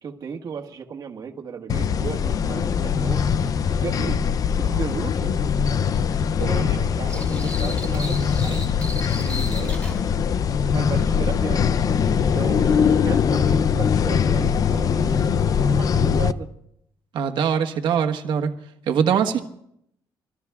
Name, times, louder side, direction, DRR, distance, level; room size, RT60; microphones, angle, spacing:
voice 1, 0.0-3.5 3.8-4.2 4.6-5.4 6.4-8.7 9.2-9.8 10.7-11.7 12.2-16.5, right 6 dB, 50° right, 4 dB, 1.5 m, -34 dB
sound 1, 1.7-16.3, left 7 dB, 45° left, 0.5 m, -21 dB
sound 2, 7.1-10.0, left 1 dB, 15° left, 2.6 m, -36 dB
voice 2, 17.1-18.5 18.9-19.4, right 7 dB, 70° right, 4 dB, 1.4 m, -22 dB
26.0 x 19.5 x 2.4 m, 0.75 s
cardioid pair, 120°, 8 cm